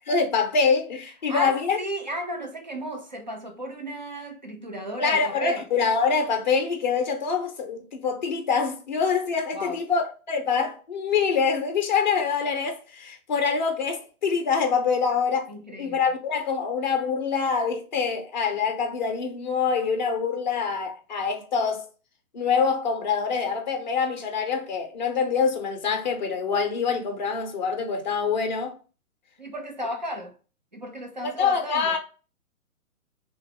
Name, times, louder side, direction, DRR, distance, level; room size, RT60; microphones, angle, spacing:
voice 1, 0.1-1.8 5.0-21.9 22.3-28.8 31.2-32.0, left 5 dB, 35° left, 0.5 m, -25 dB
voice 2, 1.3-5.6 9.5-9.8 15.5-16.0 29.4-30.3 30.7-32.0, equal, 35° right, 0.4 m, -34 dB
2.9 x 2.3 x 3.0 m
figure-of-eight pair, 130°, 44 cm